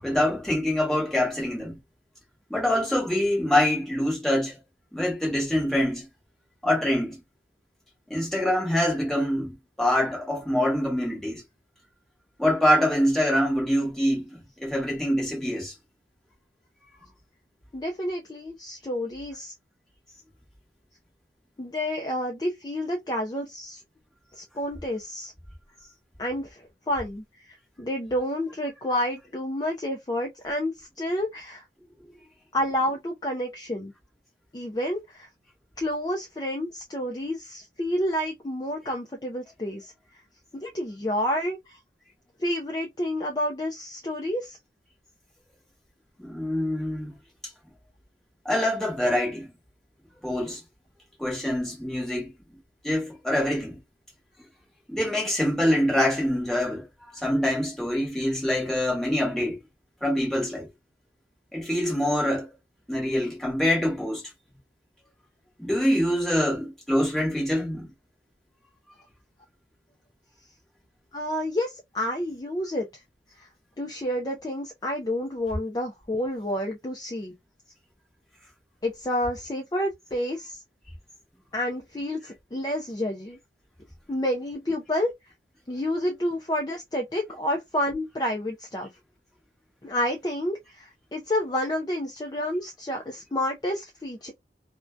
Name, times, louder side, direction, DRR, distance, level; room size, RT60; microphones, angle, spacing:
voice 1, 0.0-1.8 2.5-4.6 4.9-6.1 6.6-7.2 8.1-11.4 12.4-15.7 16.9-17.1 46.2-47.1 48.4-49.5 50.2-50.6 51.2-52.3 52.8-53.8 54.9-56.8 57.1-59.6 60.0-60.7 61.5-62.5 62.9-64.2 65.6-67.9, left 1 dB, ahead, 1.0 m, -25 dB
voice 2, 17.7-19.5 21.6-23.8 24.4-25.3 26.2-31.6 32.5-33.9 34.5-35.3 35.8-39.9 40.5-41.8 42.4-44.6 71.1-72.9 73.4-73.5 73.8-77.3 78.8-80.6 81.5-83.4 84.1-85.1 85.7-88.9 89.8-94.3, left 1 dB, 20° left, 0.4 m, -29 dB
2.6 x 2.1 x 2.3 m
head